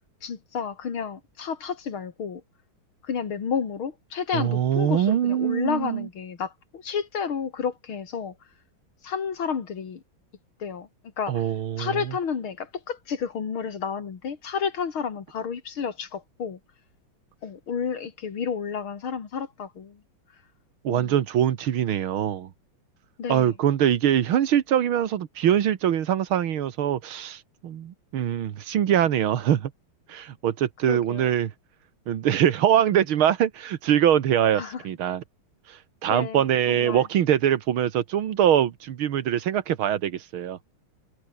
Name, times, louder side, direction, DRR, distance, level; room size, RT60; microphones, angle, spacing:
voice 1, 0.2-2.4 3.0-8.3 9.0-10.0 10.6-10.9 11.2-11.5 11.8-16.6 17.4-20.0 20.9-21.1 23.2-23.5 30.8-31.3 34.6-34.8 36.1-37.1, left 6 dB, 85° left, 3.2 m, -31 dB
voice 2, 4.3-6.1 11.3-11.9 20.8-22.5 23.3-29.7 30.1-31.5 32.1-35.2 35.7-40.6, right 10 dB, 85° right, 2.1 m, -23 dB
omnidirectional pair, 2.2 m